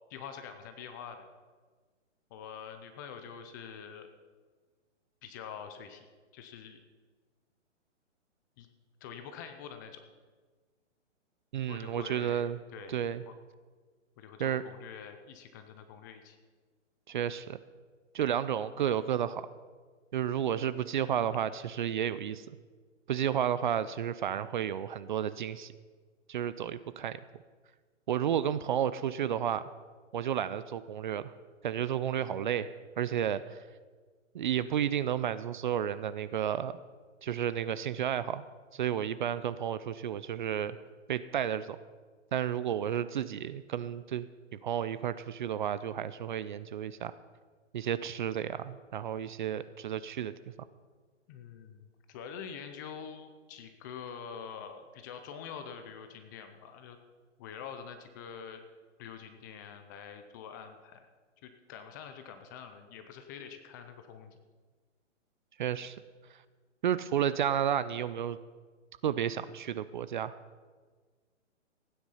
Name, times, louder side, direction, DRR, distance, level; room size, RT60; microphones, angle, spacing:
voice 1, 0.1-1.2 2.3-4.1 5.2-6.1 6.3-6.8 8.6-8.7 9.0-10.0 11.7-12.9 13.2-13.3 14.2-16.4 51.3-57.0 57.4-58.6 59.0-61.1 61.4-64.4, left 7 dB, 15° left, 7 dB, 0.5 m, -45 dB
voice 2, 11.5-12.6 12.9-13.2 14.4-14.6 17.1-17.6 18.1-19.5 20.1-22.5 23.1-25.7 26.3-27.2 28.1-29.6 30.1-31.3 31.6-33.6 34.3-36.8 37.2-38.4 38.7-40.8 41.1-41.8 42.3-44.3 44.6-47.1 47.7-50.3 65.6-66.0 66.8-68.4 69.0-70.3, right 9 dB, 40° right, 15 dB, 0.5 m, -32 dB
15.5 x 9.5 x 5.6 m, 1.5 s
hypercardioid pair, 145°, 38 cm